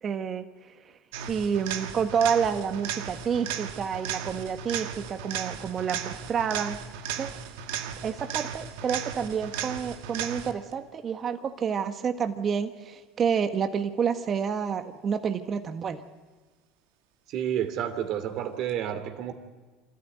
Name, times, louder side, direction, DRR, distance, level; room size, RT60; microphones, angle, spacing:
voice 1, 0.0-0.4 1.3-6.8 7.1-7.4 8.0-16.0, right 7 dB, 40° right, 7 dB, 1.4 m, -29 dB
sound 1, 1.1-10.7 18.7-18.8, right 9 dB, 80° right, 1.6 m, -36 dB
voice 2, 17.3-19.3, right 10 dB, 60° right, 8 dB, 2.8 m, -30 dB
26.5 x 14.0 x 9.3 m, 1.3 s
supercardioid pair, 95°, 0 cm